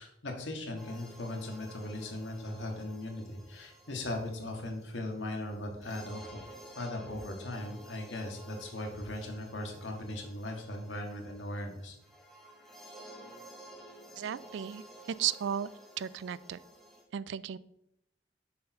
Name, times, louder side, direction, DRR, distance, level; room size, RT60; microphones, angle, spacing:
voice 1, 0.0-6.4 6.8-12.0, left 1 dB, 80° left, 2 dB, 1.7 m, -38 dB
sound 1, 0.8-17.0, right 1 dB, ahead, 1.0 m, -53 dB
voice 2, 14.2-14.8 15.2-15.7 16.0-16.6 17.1-17.6, right 9 dB, 70° right, 18 dB, 0.3 m, -34 dB
6.8 x 4.5 x 5.5 m, 0.79 s
head